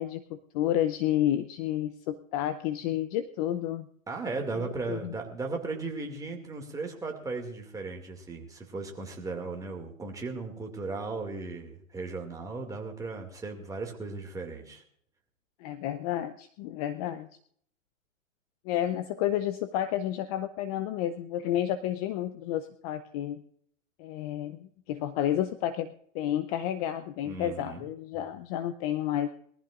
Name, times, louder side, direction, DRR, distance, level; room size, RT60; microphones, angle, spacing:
voice 1, 0.0-3.9 4.5-4.6 4.9-5.1 15.6-17.3 18.7-23.4 24.0-25.9 26.1-29.3, left 11 dB, 30° left, 12 dB, 0.6 m, -30 dB
voice 2, 4.1-14.8 27.2-27.8, right 3 dB, 10° right, 2 dB, 2.3 m, -36 dB
22.0 x 14.5 x 2.5 m, 0.64 s
hypercardioid pair, 135°, 40 cm